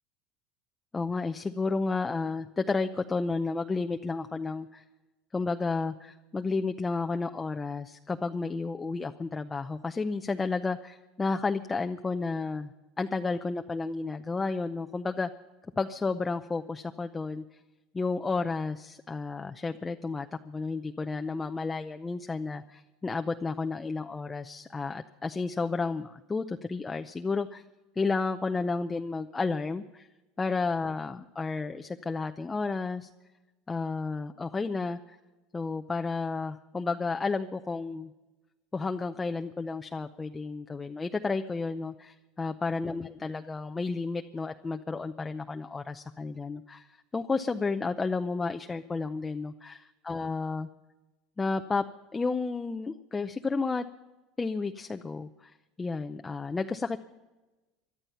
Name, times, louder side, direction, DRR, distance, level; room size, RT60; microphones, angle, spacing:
voice 1, 0.9-4.8 5.3-12.7 13.0-15.3 15.8-17.6 17.9-27.6 28.0-30.1 30.4-33.1 33.7-35.2 35.5-38.1 38.7-50.7 51.4-51.8 52.1-53.8 54.4-57.0, left 4 dB, 20° left, 6 dB, 0.6 m, -32 dB
20.5 x 12.0 x 5.7 m, 1.1 s
supercardioid pair, 105°, 0 cm